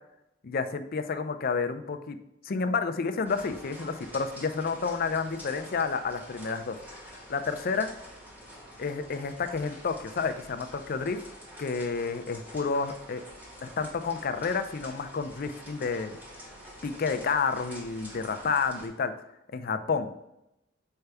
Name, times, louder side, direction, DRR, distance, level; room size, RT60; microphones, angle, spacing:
voice 1, 0.4-2.2 2.4-7.9 8.8-11.2 11.6-13.2 13.6-16.2 16.8-19.1 19.5-20.1, left 5 dB, 50° left, 9 dB, 0.5 m, -30 dB
sound 1, 3.2-18.9, equal, 10° right, 1.3 m, -47 dB
6.7 x 4.6 x 3.4 m, 0.86 s
head